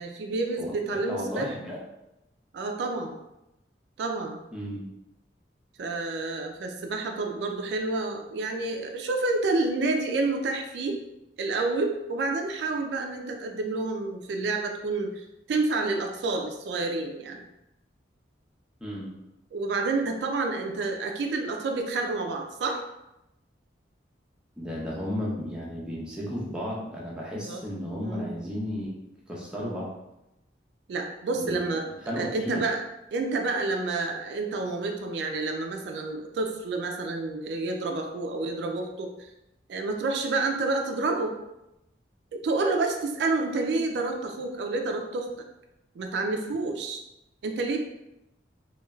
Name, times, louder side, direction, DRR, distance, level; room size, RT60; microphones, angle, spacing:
voice 1, 0.0-1.5 2.5-3.1 4.0-4.4 5.8-11.0 11.4-17.4 19.5-22.8 27.5-27.6 28.0-28.3 30.9-31.9 32.2-32.8 33.1-39.3 39.7-41.4 42.3-45.3 46.0-47.0 47.4-47.8, right 3 dB, 70° right, 3 dB, 0.3 m, -29 dB
voice 2, 1.0-1.8 4.5-4.8 18.8-19.1 24.6-28.9 29.3-29.9 31.4-31.7 32.0-32.6, equal, 5° right, -5 dB, 0.5 m, -33 dB
3.1 x 2.3 x 2.3 m, 0.90 s
head